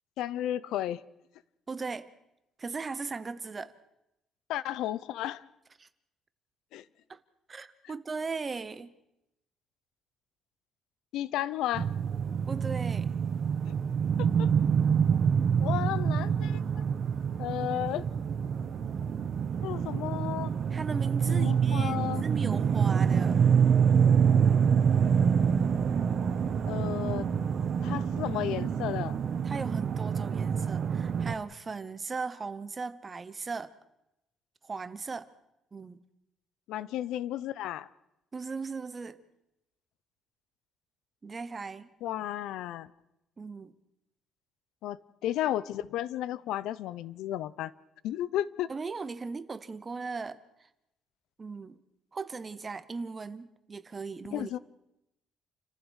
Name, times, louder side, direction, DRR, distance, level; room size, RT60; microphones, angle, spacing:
voice 1, 0.2-1.0 4.5-5.4 6.7-6.8 11.1-11.9 14.2-14.5 15.6-16.8 17.4-18.1 19.6-20.5 21.3-22.2 26.7-27.3 27.8-29.2 36.7-37.9 42.0-42.9 44.8-47.7 48.0-48.7 54.3-54.6, left 12 dB, 80° left, 0.7 m, -33 dB
voice 2, 1.7-2.1 2.6-3.7 5.8-5.9 7.1-7.2 7.5-8.9 12.5-13.1 20.7-23.4 29.4-33.7 34.7-35.3 35.7-36.0 38.3-39.2 41.2-41.9 43.4-43.7 48.7-50.4 51.4-51.8 52.1-54.6, right 4 dB, 20° right, 0.8 m, -38 dB
sound 1, 11.7-31.4, right 7 dB, 35° right, 1.1 m, -26 dB
29.5 x 14.5 x 6.4 m
cardioid pair, 175°, 0 cm